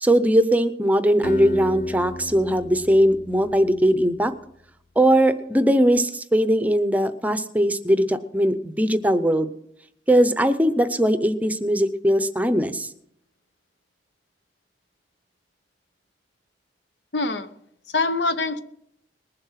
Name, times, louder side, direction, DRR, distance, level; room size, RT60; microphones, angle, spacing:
voice 1, 0.0-4.3 5.0-9.5 10.1-12.9, equal, 10° right, 11 dB, 0.6 m, -20 dB
Acoustic guitar, 1.2-4.2, left 1 dB, 45° left, 0.5 m, -35 dB
voice 2, 17.1-17.5 17.9-18.6, left 3 dB, 85° left, 11 dB, 1.0 m, -24 dB
20.0 x 7.6 x 5.7 m, 0.72 s
head